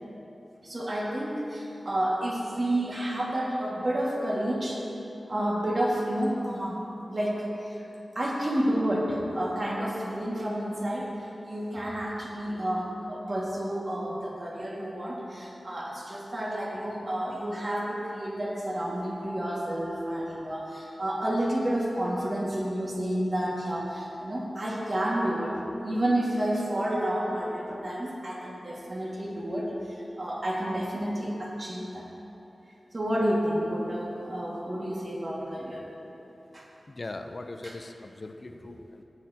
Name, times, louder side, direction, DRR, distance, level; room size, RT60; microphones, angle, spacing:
voice 1, 0.6-4.8 5.3-7.9 8.2-25.5 25.8-32.1 32.9-35.8 36.5-36.7 37.6-37.7, right 1 dB, 45° right, -4 dB, 2.0 m, -30 dB
voice 2, 36.9-39.0, left 2 dB, 45° left, 6 dB, 0.6 m, -40 dB
16.0 x 8.9 x 2.9 m, 3.0 s
wide cardioid pair, 70°, 0 cm